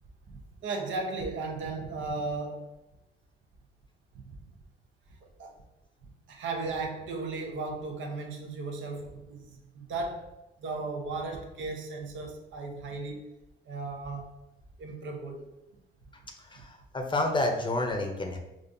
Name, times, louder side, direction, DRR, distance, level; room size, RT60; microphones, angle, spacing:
voice 1, 0.3-2.7 5.2-5.5 6.3-10.3 10.6-13.3 13.7-14.3 14.8-15.5 16.6-16.7, right 3 dB, 75° right, 3 dB, 0.7 m, -36 dB
voice 2, 16.4-18.4, left 2 dB, 25° left, 3 dB, 0.6 m, -29 dB
5.1 x 2.4 x 2.6 m, 0.95 s
cardioid pair, 90°, 20 cm